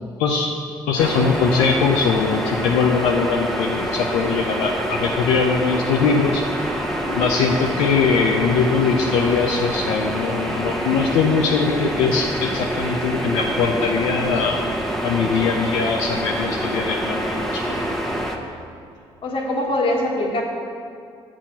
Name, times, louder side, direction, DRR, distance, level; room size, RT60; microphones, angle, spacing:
voice 1, 0.2-0.5 0.9-6.4 7.1-14.6 15.0-18.0, left 5 dB, 85° left, 0 dB, 0.6 m, -21 dB
sound 1, 1.0-18.4, equal, 5° left, 1.0 m, -26 dB
voice 2, 19.2-20.4, left 1 dB, 55° left, 0 dB, 1.5 m, -23 dB
7.5 x 4.8 x 7.1 m, 2.3 s
supercardioid pair, 70°, 11 cm